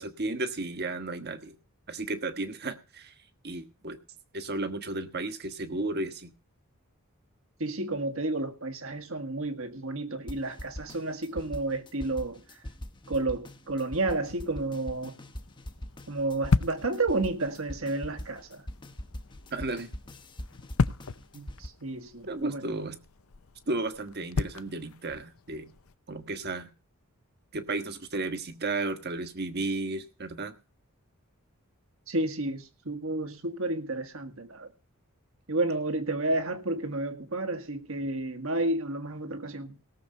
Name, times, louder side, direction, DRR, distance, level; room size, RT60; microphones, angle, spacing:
voice 1, 0.0-1.6 1.9-3.1 3.4-4.0 4.3-6.3 19.5-19.9 21.3-21.5 22.3-23.0 23.7-25.7 26.1-26.7 27.5-30.5, right 2 dB, 50° right, 1.4 m, -33 dB
voice 2, 7.6-12.4 13.1-15.2 16.1-18.6 21.6-22.6 32.1-34.7 35.5-39.8, right 2 dB, 65° right, 1.7 m, -31 dB
sound 1, 10.3-21.7, equal, 20° left, 1.0 m, -42 dB
sound 2, 14.2-26.0, left 4 dB, 70° left, 0.6 m, -36 dB
18.0 x 7.1 x 5.3 m
head